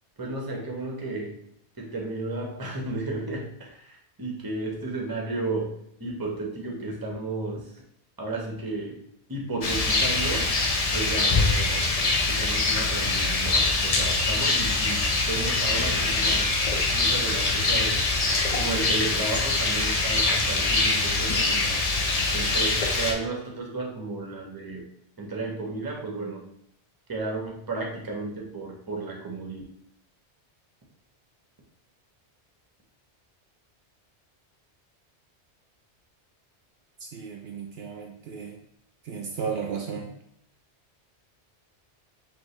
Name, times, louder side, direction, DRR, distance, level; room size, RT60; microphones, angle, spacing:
voice 1, 0.2-1.4 1.8-7.8 8.2-9.0 9.3-10.5 10.9-11.9 12.3-16.5 16.9-18.0 18.6-21.8 22.3-24.9 25.2-26.5 27.1-29.6, right 2 dB, 20° right, 0 dB, 0.8 m, -33 dB
Rain, 9.6-23.1, left 3 dB, 40° left, 0.6 m, -24 dB
voice 2, 37.0-38.6 39.0-40.1, right 6 dB, 65° right, 2 dB, 0.8 m, -34 dB
5.3 x 2.8 x 3.1 m, 0.72 s
omnidirectional pair, 1.2 m